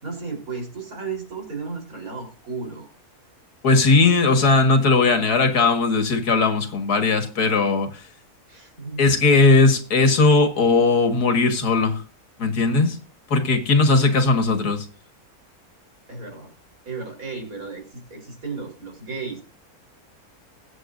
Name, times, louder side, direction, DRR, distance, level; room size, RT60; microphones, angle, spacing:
voice 1, 0.0-2.9 8.5-9.1 13.9-14.1 16.1-16.5 16.9-19.4, right 4 dB, 65° right, 4.5 m, -34 dB
voice 2, 3.6-8.0 9.0-12.0 12.4-13.0 13.3-14.8, left 3 dB, 90° left, 2.3 m, -18 dB
21.5 x 8.0 x 2.6 m
omnidirectional pair, 1.6 m